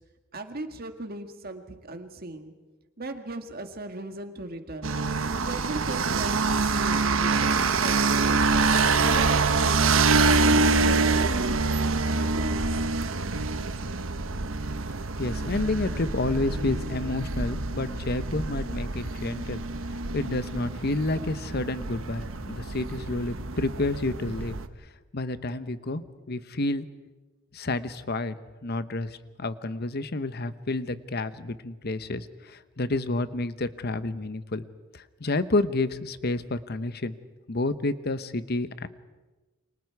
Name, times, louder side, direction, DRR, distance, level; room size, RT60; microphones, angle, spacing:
voice 1, 0.3-2.5 3.0-5.0 5.4-7.5 7.8-8.6 9.0-11.6 11.9-12.7, right 2 dB, 50° right, 6 dB, 1.9 m, -38 dB
sound 1, 4.8-24.7, right 4 dB, 90° right, 1.1 m, -26 dB
voice 2, 15.2-19.6 20.1-24.6 25.1-26.0 26.3-26.9 27.5-28.3 28.6-34.6 34.9-37.1 37.5-38.9, left 2 dB, 50° left, 13 dB, 1.0 m, -29 dB
29.0 x 25.0 x 4.7 m, 1.2 s
head